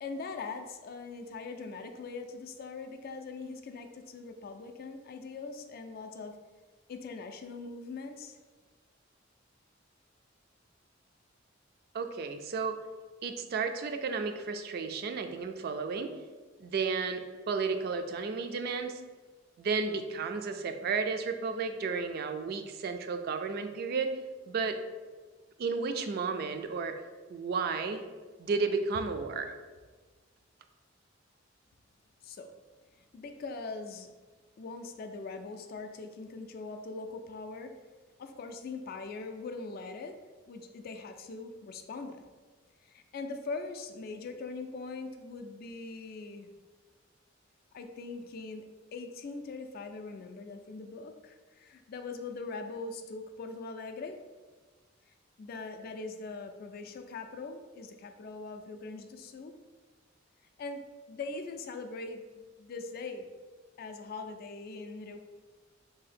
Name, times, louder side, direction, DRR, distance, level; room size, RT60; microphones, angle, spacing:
voice 1, 0.0-6.4 6.9-8.4 32.2-32.5 33.1-34.1 34.6-37.7 38.2-40.2 40.5-42.2 42.8-46.5 47.7-48.7 48.9-54.2 55.4-59.5 60.6-60.8 61.1-63.3 63.8-65.2, left 3 dB, 50° left, 6 dB, 0.3 m, -41 dB
voice 2, 11.9-12.8 13.2-16.1 16.6-19.0 19.6-24.1 24.5-24.8 25.6-27.0 27.3-28.0 28.4-29.5, right 4 dB, 55° right, 8 dB, 0.3 m, -33 dB
2.8 x 2.7 x 4.1 m, 1.4 s
head